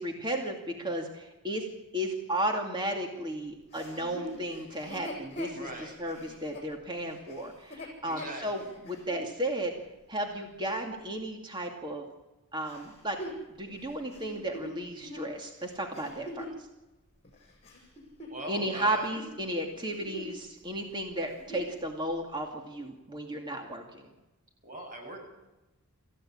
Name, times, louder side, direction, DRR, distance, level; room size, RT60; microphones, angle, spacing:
voice 1, 0.0-1.6 1.9-9.7 10.1-12.1 12.5-13.2 13.6-16.5 18.5-24.1, right 1 dB, 20° right, 2 dB, 2.5 m, -34 dB
Chuckle chortle, 3.7-9.3 9.9-10.0 12.7-16.6 17.2-18.7 19.0-19.3 19.7-20.5 20.8-20.9 21.2-21.7 22.4-22.5, left 1 dB, 30° left, 6.7 m, -43 dB
voice 2, 5.5-5.9 8.0-8.6 18.3-19.1 24.6-25.2, right 1 dB, 40° right, 3 dB, 7.6 m, -40 dB
26.5 x 15.0 x 8.8 m, 1.0 s
head